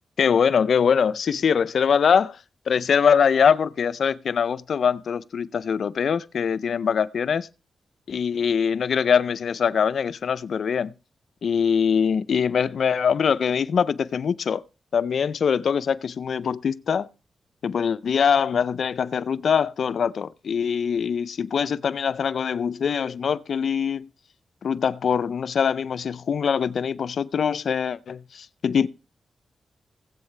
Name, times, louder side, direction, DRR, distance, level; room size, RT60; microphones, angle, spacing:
voice 1, 0.2-2.4 2.7-7.5 8.1-10.9 11.4-14.6 14.9-17.1 17.6-24.1 24.6-28.9, left 7 dB, 75° left, 0.5 m, -23 dB
19.0 x 8.1 x 3.3 m
cardioid pair, 60°, 0 cm